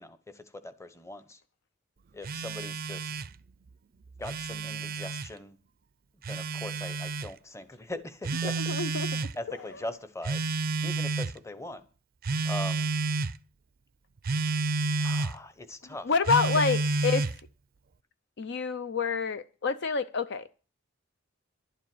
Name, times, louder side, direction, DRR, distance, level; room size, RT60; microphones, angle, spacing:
voice 1, 0.0-1.4 2.1-3.2 4.2-5.6 6.3-8.8 9.4-10.4 10.8-11.8 12.4-12.9 15.0-16.1 16.4-16.6, left 2 dB, 15° left, 0.9 m, -41 dB
Telephone, 2.2-3.3 4.1-5.3 6.2-7.3 8.2-9.3 10.2-11.4 12.2-13.3 14.2-15.3 16.2-17.4, right 3 dB, 45° right, 0.5 m, -30 dB
voice 2, 8.6-9.3 16.1-17.3 18.4-20.4, left 5 dB, 60° left, 0.6 m, -28 dB
11.5 x 7.4 x 7.7 m
head